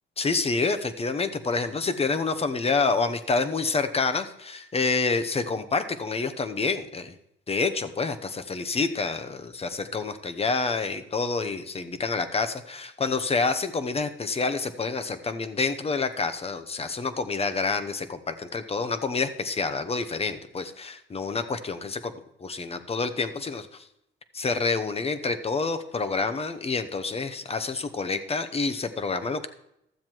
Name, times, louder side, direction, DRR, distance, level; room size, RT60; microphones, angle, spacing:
voice 1, 0.2-7.1 7.5-23.9 24.3-29.5, left 4 dB, 30° left, 10 dB, 0.9 m, -28 dB
13.0 x 7.4 x 4.6 m, 0.80 s
cardioid pair, 90°, 20 cm